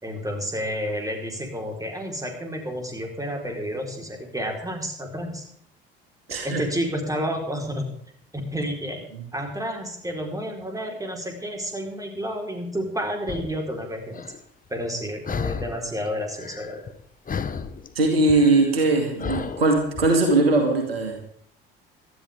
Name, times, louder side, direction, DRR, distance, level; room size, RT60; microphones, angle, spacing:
voice 1, 0.0-5.4 6.4-7.9 8.5-9.0 9.3-14.2 14.7-16.8, equal, 10° right, 2 dB, 4.5 m, -30 dB
voice 2, 6.3-6.7 9.1-9.2 18.0-21.2, right 2 dB, 85° right, 3 dB, 2.4 m, -20 dB
sound 1, 13.3-13.6 14.1-14.4 15.2-15.9 16.2-17.0 17.3-20.1, left 6 dB, 30° left, 1.2 m, -33 dB
18.5 x 13.0 x 3.7 m, 0.65 s
figure-of-eight pair, 60°, 29 cm